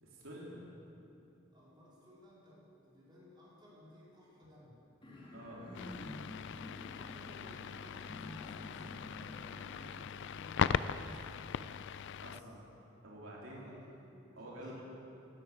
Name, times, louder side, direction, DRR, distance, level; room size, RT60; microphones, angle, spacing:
voice 1, 0.0-0.6 5.3-5.6 12.2-12.7 13.0-13.7 14.3-14.7, right 1 dB, 75° right, -5 dB, 3.1 m, -48 dB
voice 2, 1.5-4.8 6.7-11.4 13.4-14.7, left 1 dB, 25° right, -8 dB, 4.4 m, -58 dB
sound 1, 5.0-10.0, left 1 dB, 25° left, 3.0 m, -49 dB
sound 2, 5.7-12.4, left 7 dB, 60° left, 0.4 m, -39 dB
12.5 x 12.0 x 8.4 m, 2.8 s
head